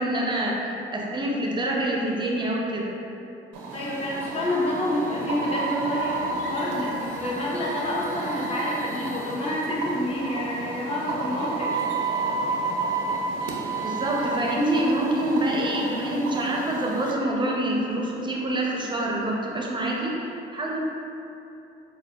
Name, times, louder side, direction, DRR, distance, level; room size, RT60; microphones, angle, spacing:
voice 1, 0.0-2.9 13.8-20.8, right 1 dB, 25° right, -2 dB, 0.5 m, -26 dB
sound 1, 3.5-17.1, right 3 dB, 90° right, 0.4 m, -31 dB
voice 2, 3.7-11.7, left 1 dB, 30° left, -5 dB, 0.7 m, -28 dB
4.6 x 2.1 x 2.2 m, 2.8 s
cardioid pair, 90°, 20 cm